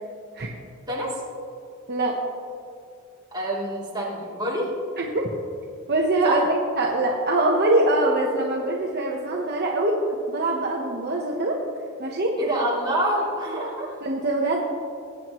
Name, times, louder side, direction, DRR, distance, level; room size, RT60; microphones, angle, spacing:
voice 1, 0.9-1.2 3.3-4.7 6.2-6.4 12.4-14.0, right 1 dB, 20° right, -7 dB, 3.1 m, -26 dB
voice 2, 5.0-5.3 5.9-10.0 10.3-11.6 12.0-12.3 14.0-14.6, right 2 dB, 50° right, -1 dB, 1.0 m, -23 dB
20.5 x 9.1 x 3.1 m, 2.4 s
head